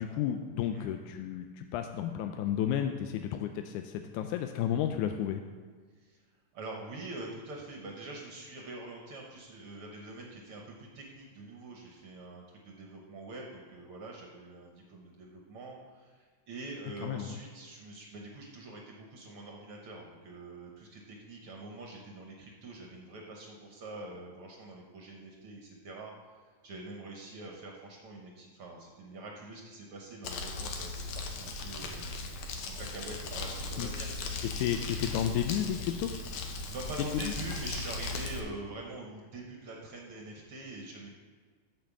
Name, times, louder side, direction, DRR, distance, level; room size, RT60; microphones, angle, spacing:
voice 1, 0.0-5.4 17.0-17.4 33.8-33.9 34.6-36.1 37.0-37.3, left 10 dB, 90° left, 6 dB, 2.0 m, -32 dB
voice 2, 6.5-34.1 36.7-41.1, right 2 dB, 60° right, 0 dB, 1.6 m, -45 dB
Crumpling crinkling, 30.2-38.4, left 3 dB, 70° left, 2.1 m, -38 dB
8.6 x 5.4 x 7.2 m, 1.5 s
omnidirectional pair, 3.4 m